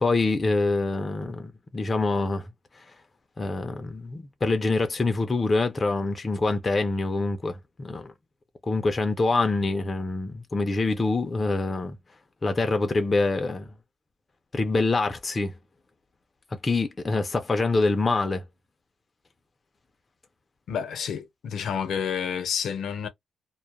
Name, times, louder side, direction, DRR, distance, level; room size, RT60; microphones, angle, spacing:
voice 1, 0.0-2.5 3.4-8.1 8.6-12.0 12.4-13.7 14.5-15.5 16.5-18.4, left 3 dB, 30° left, 0.5 m, -25 dB
voice 2, 20.7-23.1, left 7 dB, 85° left, 0.7 m, -29 dB
2.2 x 2.0 x 2.9 m
cardioid pair, 110°, 0 cm